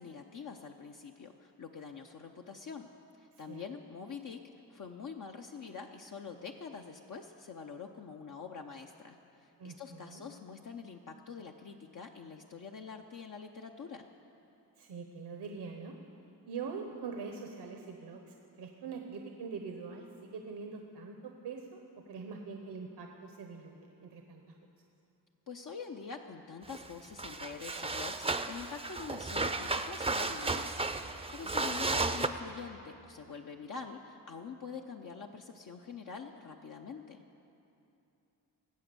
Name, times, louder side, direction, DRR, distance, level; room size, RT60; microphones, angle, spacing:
voice 1, 0.0-2.9 3.2-4.4 4.7-14.1 25.5-37.2, left 5 dB, 50° left, 2 dB, 0.7 m, -45 dB
voice 2, 9.6-10.2 14.8-16.0 16.5-21.8 22.1-24.6 31.4-31.5, right 5 dB, 80° right, 3 dB, 1.0 m, -43 dB
sound 1, 26.7-26.9 27.2-32.3, right 3 dB, 15° right, 0.5 m, -34 dB
18.5 x 7.9 x 6.8 m, 2.8 s
cardioid pair, 80°, 40 cm